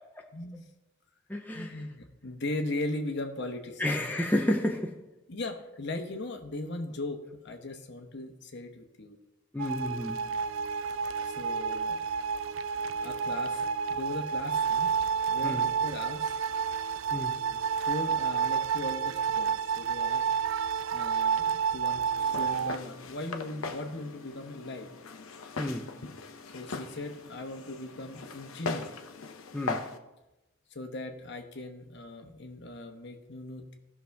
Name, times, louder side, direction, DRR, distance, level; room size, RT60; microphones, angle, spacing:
voice 1, 0.3-0.6 1.5-4.0 5.3-9.2 11.2-12.0 13.0-13.6 13.9-14.9 15.3-16.3 17.3-20.3 20.9-24.9 26.5-28.9 30.7-33.7, left 2 dB, 55° left, 1.1 m, -38 dB
voice 2, 1.3-1.7 3.8-5.0 9.5-10.2 15.4-15.6 17.1-17.3 25.6-25.9 29.5-29.8, left 1 dB, 10° left, 0.6 m, -30 dB
sound 1, 9.6-22.8, right 6 dB, 65° right, 0.3 m, -30 dB
Walk footsteps, 22.2-30.0, left 4 dB, 75° left, 0.8 m, -40 dB
16.5 x 6.1 x 3.5 m
head